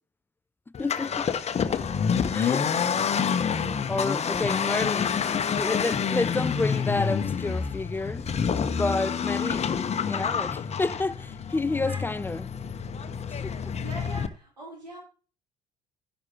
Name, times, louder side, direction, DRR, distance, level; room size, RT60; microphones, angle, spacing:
Accelerating revving vroom, 0.7-14.3, left 7 dB, 30° left, 1.0 m, -28 dB
voice 1, 0.8-1.3 2.3-2.7 3.9-8.3 8.7-9.8 10.1-12.5 13.3-13.5, left 3 dB, 10° left, 0.4 m, -30 dB
voice 2, 3.5-4.6 11.8-12.1 13.3-15.0, right 1 dB, 85° right, 4.1 m, -44 dB
11.0 x 11.0 x 3.0 m
figure-of-eight pair, 55°, 21 cm